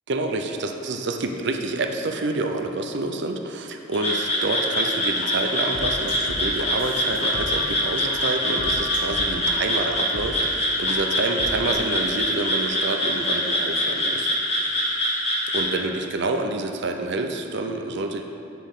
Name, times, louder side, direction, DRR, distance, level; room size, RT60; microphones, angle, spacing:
voice 1, 0.1-14.8 15.5-18.2, right 2 dB, 65° right, 4 dB, 0.6 m, -28 dB
Frog, 3.9-15.7, left 1 dB, 35° left, 1.8 m, -24 dB
sound 1, 5.2-5.3 5.7-8.1 8.4-9.5 10.1-10.3 10.9-11.0 11.4-11.7, left 2 dB, 80° left, 1.2 m, -35 dB
11.5 x 5.8 x 3.7 m, 2.7 s
head